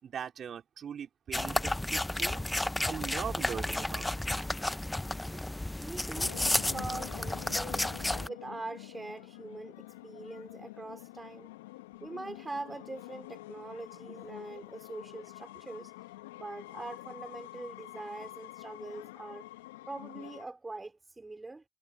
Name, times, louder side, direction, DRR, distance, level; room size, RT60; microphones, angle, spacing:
voice 1, 0.0-2.5 2.8-4.3 5.3-5.4, right 8 dB, 50° right, 3.9 m, -41 dB
sound 1, 1.3-8.3, left 1 dB, 10° left, 0.9 m, -32 dB
voice 2, 5.8-11.5 12.0-19.5 19.9-21.6, right 3 dB, 20° right, 4.1 m, -43 dB
sound 2, 6.2-20.5, left 18 dB, 80° left, 1.7 m, -47 dB
hypercardioid pair, 55°, 0 cm